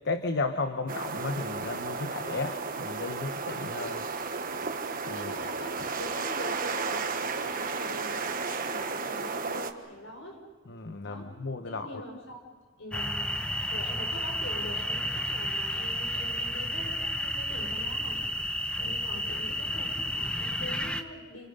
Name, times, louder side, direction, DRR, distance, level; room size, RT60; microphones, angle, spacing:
voice 1, 0.0-4.0 5.1-5.3 10.7-12.0 18.8-19.2, left 3 dB, 60° left, 8 dB, 1.0 m, -34 dB
sound 1, 0.9-9.7, right 4 dB, 45° right, 1.3 m, -33 dB
voice 2, 5.1-10.4 11.1-11.3 11.6-12.4 12.8-13.2 13.7-18.2 18.7-21.5, left 1 dB, 75° left, 3 dB, 5.8 m, -43 dB
sound 2, 12.9-21.0, equal, 5° left, 1.0 m, -31 dB
29.5 x 26.0 x 5.5 m, 1.4 s
head